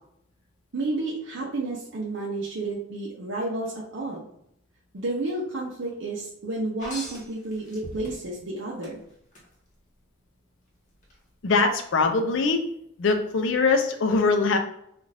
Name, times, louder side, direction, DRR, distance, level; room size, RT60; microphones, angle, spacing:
voice 1, 0.7-4.3 4.9-9.0, right 2 dB, 70° right, -3 dB, 0.6 m, -31 dB
sound 1, 6.8-8.4 8.8-9.4 11.0-11.1, left 1 dB, 40° left, 0.8 m, -40 dB
voice 2, 11.4-12.6 13.0-14.6, left 4 dB, 70° left, 5 dB, 0.5 m, -22 dB
2.4 x 2.4 x 3.2 m, 0.73 s
head